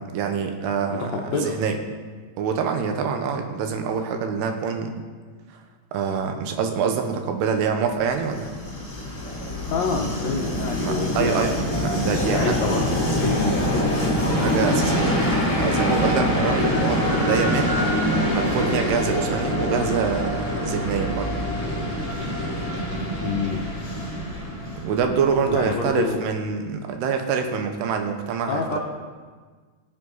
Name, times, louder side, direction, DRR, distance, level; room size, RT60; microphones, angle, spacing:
voice 1, 0.0-1.8 2.4-4.9 5.5-5.6 5.9-8.5 10.8-12.6 14.2-18.0 18.3-21.3 24.7-28.8, right 6 dB, 85° right, 5 dB, 3.1 m, -25 dB
voice 2, 0.9-1.5 9.7-11.6 12.1-13.9 23.2-23.7 25.4-26.2 28.5-28.8, left 4 dB, 85° left, 0 dB, 1.5 m, -27 dB
Train, 8.0-25.8, equal, 10° left, 2.6 m, -25 dB
20.0 x 7.8 x 4.1 m, 1.5 s
omnidirectional pair, 4.6 m